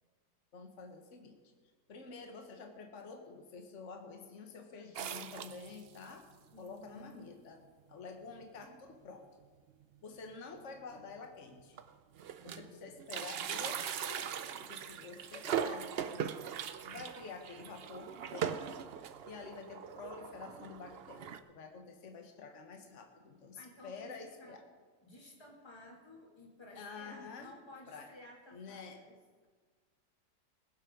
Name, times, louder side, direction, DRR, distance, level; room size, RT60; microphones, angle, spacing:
voice 1, 0.5-1.4 1.9-6.3 6.6-7.6 7.9-9.3 10.0-11.8 12.4-16.3 16.8-24.6 26.8-27.6 27.9-28.1 28.5-29.0, left 4 dB, 50° left, 4 dB, 1.6 m, -49 dB
sound 1, 5.0-6.1 6.7-6.8 7.0-7.1 7.9-8.0 8.4-8.6 8.9-9.0 10.3-10.4 11.1-11.2 11.5-12.7 13.0-21.4, right 8 dB, 85° right, 0.5 m, -40 dB
voice 2, 6.5-7.3 12.4-13.1 23.5-24.6 25.0-29.1, left 1 dB, 15° left, -1 dB, 2.2 m, -55 dB
20.5 x 7.4 x 5.1 m, 1.5 s
omnidirectional pair, 1.8 m